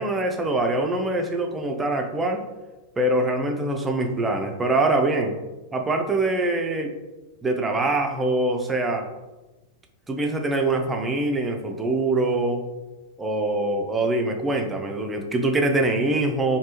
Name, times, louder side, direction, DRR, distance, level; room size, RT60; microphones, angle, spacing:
voice 1, 0.0-2.4 3.0-5.4 5.7-6.9 7.4-9.1 10.1-12.6 13.2-16.6, right 2 dB, 15° right, 3 dB, 0.4 m, -24 dB
3.2 x 2.8 x 2.9 m, 1.1 s
figure-of-eight pair, 90°, 0 cm